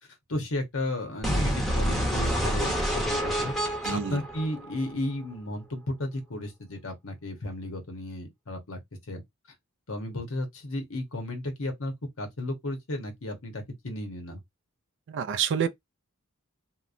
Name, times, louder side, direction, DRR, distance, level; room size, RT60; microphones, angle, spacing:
voice 1, 0.3-3.5 3.9-8.8 9.1-9.2 9.9-14.4, left 1 dB, 70° left, 0.9 m, -34 dB
sound 1, 1.2-5.2, equal, ahead, 0.7 m, -28 dB
voice 2, 3.8-4.2 15.1-15.7, right 7 dB, 55° right, 0.3 m, -27 dB
2.9 x 2.1 x 2.4 m
head